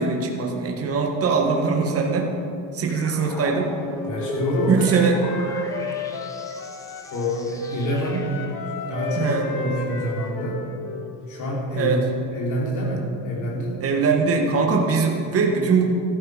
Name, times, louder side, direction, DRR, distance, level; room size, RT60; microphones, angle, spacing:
voice 1, 0.0-2.3 2.7-3.7 4.7-5.2 9.2-9.5 11.7-12.0 13.8-15.8, right 4 dB, 35° right, 1 dB, 1.6 m, -21 dB
sound 1, 2.9-8.6, left 1 dB, 10° left, 1.0 m, -36 dB
Wind instrument woodwind instrument, 3.8-7.3 7.6-11.1, left 5 dB, 60° left, 1.7 m, -33 dB
voice 2, 4.1-5.0 7.1-8.3 8.9-10.6 11.3-12.0 12.3-13.8, equal, 45° left, -3 dB, 3.4 m, -26 dB
14.0 x 12.0 x 4.9 m, 2.7 s
cardioid pair, 160°, 41 cm